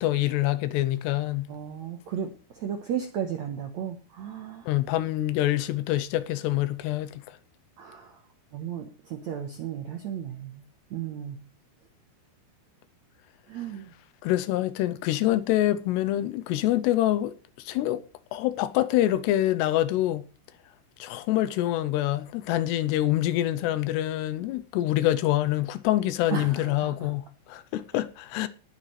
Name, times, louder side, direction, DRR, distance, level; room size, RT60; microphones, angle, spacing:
voice 1, 0.0-1.5 4.7-7.2 14.2-17.3 17.7-18.0 18.3-20.2 21.0-28.5, left 14 dB, 85° left, 2.8 m, -26 dB
voice 2, 1.5-4.7 7.8-8.2 8.5-10.6 10.9-11.4 13.5-13.9 26.3-27.1, right 8 dB, 75° right, 1.6 m, -34 dB
19.0 x 10.0 x 3.3 m
omnidirectional pair, 4.9 m